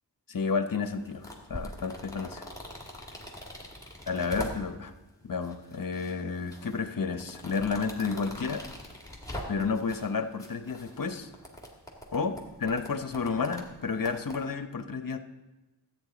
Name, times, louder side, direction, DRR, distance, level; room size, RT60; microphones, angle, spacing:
voice 1, 0.3-2.4 4.1-4.9 5.2-8.7 9.5-11.3 12.1-15.2, left 5 dB, 55° left, 9 dB, 0.8 m, -31 dB
sound 1, 0.9-4.9 5.4-6.1 6.5-10.1 10.4-14.4, equal, 10° left, 2.0 m, -43 dB
13.5 x 9.1 x 3.9 m, 1.1 s
wide cardioid pair, 60°, 42 cm